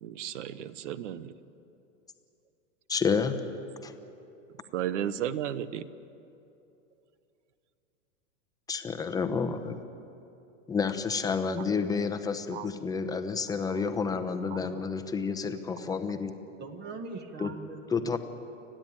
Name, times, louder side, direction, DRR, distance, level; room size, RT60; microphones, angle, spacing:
voice 1, 0.0-1.3 4.7-5.9 12.5-12.7 13.7-13.8 14.5-14.6, right 10 dB, 70° right, 16 dB, 1.0 m, -34 dB
voice 2, 2.9-3.4 3.8-3.9 8.7-9.8 10.7-16.3 17.4-17.5 17.9-18.2, left 5 dB, 10° left, 8 dB, 0.9 m, -30 dB
voice 3, 16.6-18.2, right 4 dB, 30° right, 7 dB, 1.5 m, -42 dB
29.5 x 10.5 x 8.8 m, 2.8 s
supercardioid pair, 140°, 38 cm